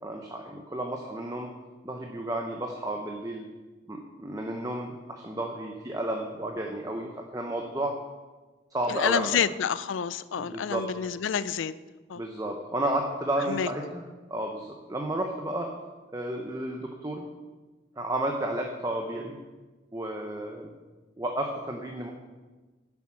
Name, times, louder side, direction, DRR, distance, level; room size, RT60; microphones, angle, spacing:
voice 1, 0.0-1.5 1.8-3.5 3.9-7.9 8.7-9.3 10.5-10.8 12.2-14.0 14.3-15.7 16.1-17.2 18.0-19.4 19.9-20.7 21.2-22.1, right 1 dB, 20° right, 2 dB, 0.8 m, -32 dB
voice 2, 8.9-11.7 12.1-12.2 13.5-13.7, left 7 dB, 85° left, 16 dB, 0.4 m, -28 dB
11.0 x 7.2 x 6.1 m, 1.3 s
head